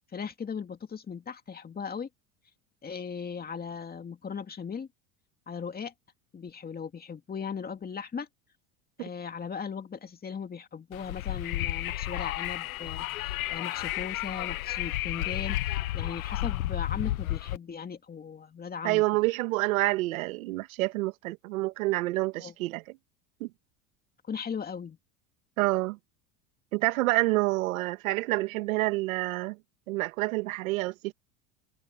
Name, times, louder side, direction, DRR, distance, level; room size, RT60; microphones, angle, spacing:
voice 1, 0.1-2.1 2.8-4.9 5.5-5.9 6.3-8.3 9.0-19.0 22.4-22.5 24.3-25.0, left 6 dB, 20° left, 2.4 m, -38 dB
Wind, 10.9-17.6, left 16 dB, 85° left, 1.3 m, -32 dB
voice 2, 18.8-23.0 23.4-23.5 25.6-26.0 26.7-29.6 29.9-31.1, right 20 dB, 80° right, 2.1 m, -28 dB
supercardioid pair, 110°, 41 cm